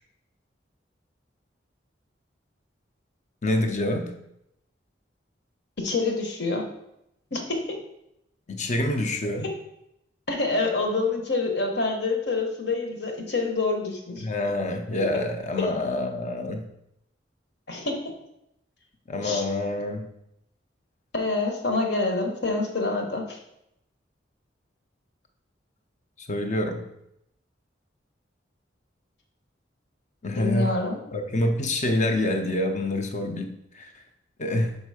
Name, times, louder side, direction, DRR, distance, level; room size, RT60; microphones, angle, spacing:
voice 1, 3.4-4.1 8.5-9.5 14.2-16.7 19.1-20.0 26.3-26.8 30.2-30.8 31.1-33.9 34.4-34.8, left 1 dB, 40° left, 6 dB, 0.7 m, -26 dB
voice 2, 5.8-6.6 7.3-7.6 9.4-9.5 10.3-14.3 15.6-15.7 17.7-18.0 19.2-19.4 21.1-23.4 30.4-31.0, left 3 dB, 65° left, 2 dB, 1.2 m, -26 dB
5.4 x 4.9 x 4.8 m, 0.81 s
head